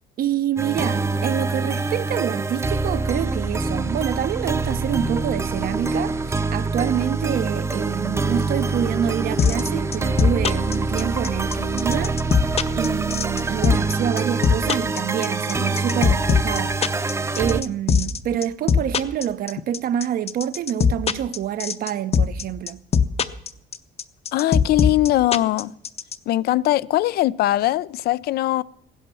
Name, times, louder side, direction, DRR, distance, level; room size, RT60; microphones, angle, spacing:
voice 1, 0.2-12.2 12.7-22.8, right 10 dB, 60° right, 0.8 m, -27 dB
sound 1, 0.6-17.6, right 3 dB, 15° right, 0.7 m, -25 dB
sound 2, 9.4-26.2, left 6 dB, 35° left, 0.8 m, -20 dB
voice 2, 24.3-25.7 26.3-28.6, left 15 dB, 70° left, 0.5 m, -21 dB
15.5 x 11.0 x 7.0 m
cardioid pair, 110°, 17 cm